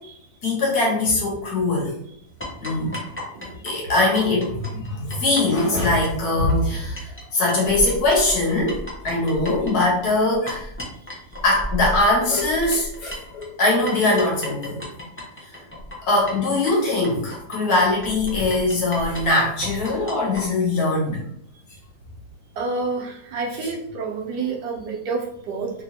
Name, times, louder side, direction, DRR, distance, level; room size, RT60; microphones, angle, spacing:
voice 1, 0.4-1.9 2.6-3.1 3.6-10.7 11.4-14.8 16.1-21.3 23.6-23.7, left 2 dB, 65° left, -3 dB, 1.6 m, -21 dB
sound 1, 2.4-7.2 7.5-20.4, equal, 20° left, 0.4 m, -34 dB
voice 2, 3.3-3.7 22.6-25.7, right 4 dB, 75° right, 0 dB, 1.3 m, -29 dB
3.3 x 3.1 x 2.7 m, 0.70 s
omnidirectional pair, 1.8 m